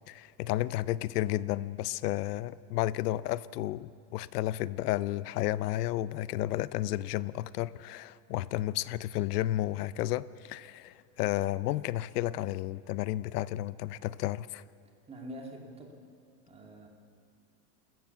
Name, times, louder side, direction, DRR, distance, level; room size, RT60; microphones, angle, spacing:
voice 1, 0.1-14.6, left 15 dB, 70° left, 0.8 m, -32 dB
voice 2, 15.1-16.0 16.5-16.9, right 1 dB, 15° right, 2.3 m, -45 dB
28.5 x 14.0 x 7.0 m
supercardioid pair, 160°, 48 cm